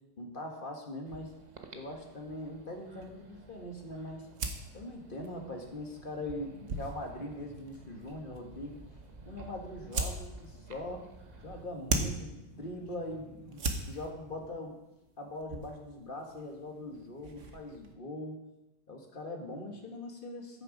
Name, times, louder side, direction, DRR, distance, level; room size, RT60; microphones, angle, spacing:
voice 1, 0.2-1.3 1.7-4.3 4.7-8.8 9.3-11.1 11.4-14.8 15.2-18.4 18.9-20.6, left 1 dB, 25° left, 2 dB, 1.6 m, -41 dB
sound 1, 1.1-17.9, right 3 dB, 45° right, 1.2 m, -42 dB
sound 2, 1.1-11.7, right 3 dB, 70° right, 0.4 m, -54 dB
sound 3, 8.5-14.5, left 1 dB, 10° left, 1.6 m, -59 dB
14.0 x 6.7 x 5.2 m, 0.93 s
omnidirectional pair, 2.2 m